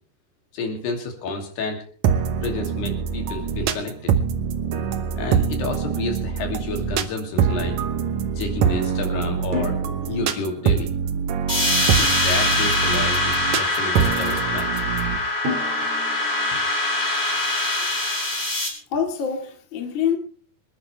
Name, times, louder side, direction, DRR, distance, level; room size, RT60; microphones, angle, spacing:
voice 1, 0.5-1.8 2.4-4.2 5.2-7.8 8.4-9.8 10.1-10.9 11.9-14.8, left 3 dB, 75° left, 4.7 m, -30 dB
sound 1, 2.0-15.2, right 7 dB, 80° right, 1.6 m, -24 dB
Drum, 5.7-7.0 9.5-12.5 15.5-18.3, left 1 dB, 65° right, 4.0 m, -36 dB
sound 2, 11.5-18.7, left 2 dB, 15° left, 3.8 m, -23 dB
voice 2, 18.9-20.2, left 7 dB, 40° left, 2.1 m, -25 dB
26.0 x 10.5 x 3.4 m
omnidirectional pair, 4.8 m